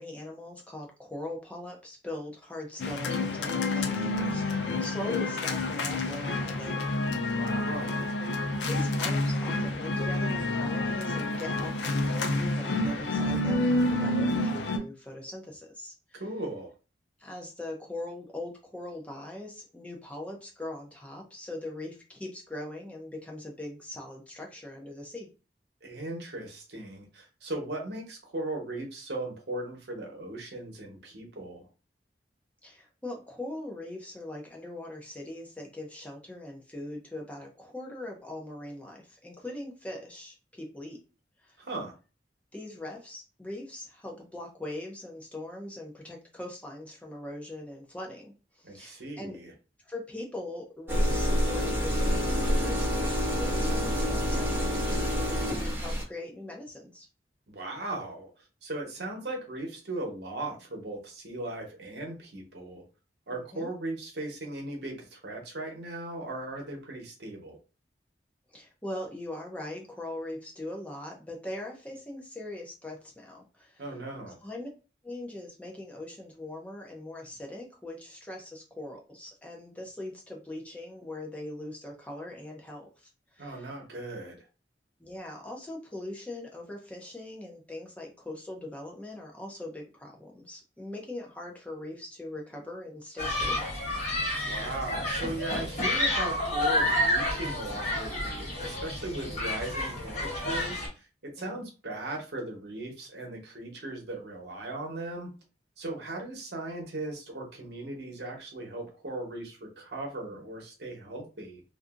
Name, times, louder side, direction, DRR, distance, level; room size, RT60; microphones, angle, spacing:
voice 1, 0.0-7.0 8.5-16.2 17.2-25.3 32.6-41.0 41.4-41.6 42.5-49.4 49.9-57.1 63.3-63.7 68.5-73.8 74.3-74.7 75.0-83.8 85.0-93.7 101.4-101.6 106.1-106.2, left 1 dB, 10° left, -1 dB, 0.5 m, -41 dB
sound 1, 2.8-14.8, left 2 dB, 80° left, 0.4 m, -29 dB
voice 2, 7.3-8.1 16.2-16.7 25.8-31.7 41.6-41.9 48.6-49.5 57.5-58.3 58.6-62.8 63.3-67.6 73.8-74.4 83.4-84.5 94.4-105.3 105.8-111.6, right 2 dB, 70° right, 1 dB, 0.9 m, -38 dB
sound 2, 50.9-56.0, equal, 15° right, 0.8 m, -27 dB
Human group actions, 93.2-100.9, left 1 dB, 40° left, 1.0 m, -30 dB
2.6 x 2.5 x 2.4 m, 0.34 s
head